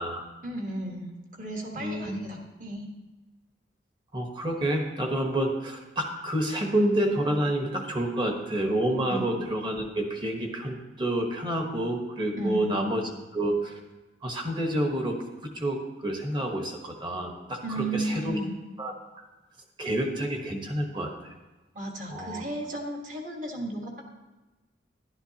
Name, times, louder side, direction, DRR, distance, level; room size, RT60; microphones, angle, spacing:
voice 1, 0.4-2.9 9.1-9.3 12.4-12.8 17.6-18.5 21.7-24.0, right 1 dB, 45° right, 1 dB, 1.5 m, -34 dB
voice 2, 1.7-2.1 4.1-13.8 14.2-15.2 15.5-18.4 18.8-18.9 19.8-21.3 22.1-22.4, right 1 dB, 25° right, 2 dB, 1.1 m, -29 dB
11.5 x 11.0 x 2.8 m, 1.1 s
head